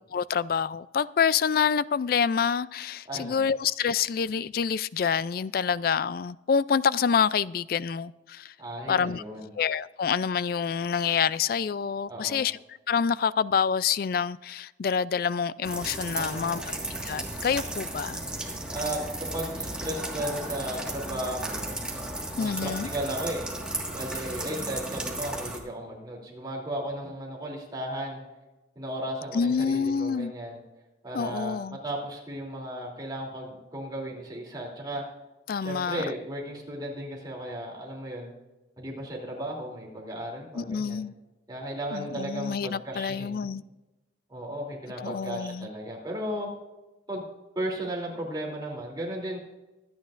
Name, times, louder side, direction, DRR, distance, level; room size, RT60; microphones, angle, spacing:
voice 1, 0.1-8.5 8.9-9.2 9.6-12.6 12.9-18.2 22.4-22.9 29.3-30.3 31.1-31.8 35.5-36.0 40.5-41.1 41.9-43.6 45.0-45.7, left 6 dB, 50° left, 0.3 m, -27 dB
voice 2, 3.0-3.5 8.6-9.5 12.1-12.4 16.1-16.6 18.7-21.7 22.4-23.4 23.9-28.2 28.7-30.6 31.0-35.0 35.6-38.3 38.8-41.0 41.5-43.5 44.3-46.5 47.1-47.2 47.5-49.4, right 1 dB, 20° right, 2.9 m, -35 dB
sound 1, 15.6-25.6, right 1 dB, 5° right, 1.6 m, -34 dB
24.0 x 9.5 x 2.5 m
head